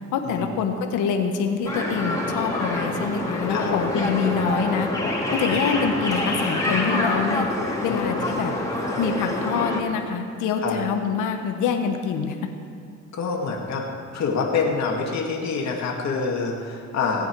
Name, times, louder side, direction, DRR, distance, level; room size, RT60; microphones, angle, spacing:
voice 1, 0.1-4.9 5.3-7.5 7.8-8.5 9.0-12.4, left 6 dB, 90° left, 5 dB, 1.3 m, -25 dB
sound 1, 1.7-9.8, left 1 dB, 10° left, 2.8 m, -26 dB
voice 2, 7.9-8.4 10.6-10.8 13.1-13.8 14.1-17.3, left 5 dB, 65° left, -1 dB, 2.3 m, -26 dB
18.5 x 8.7 x 4.7 m, 2.3 s
cardioid pair, 90°, 30 cm